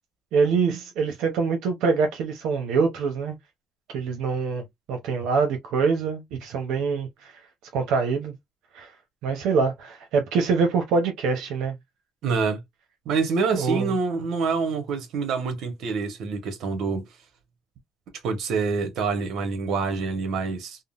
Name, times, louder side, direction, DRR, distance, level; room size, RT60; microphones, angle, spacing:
voice 1, 0.3-3.4 3.9-7.3 7.7-8.3 8.7-8.9 9.2-11.7 13.5-13.9, right 5 dB, 90° right, 0.7 m, -24 dB
voice 2, 12.2-12.6 13.0-17.1 18.2-20.8, right 4 dB, 60° right, 1.0 m, -26 dB
3.6 x 2.0 x 2.4 m
cardioid pair, 170°, 0 cm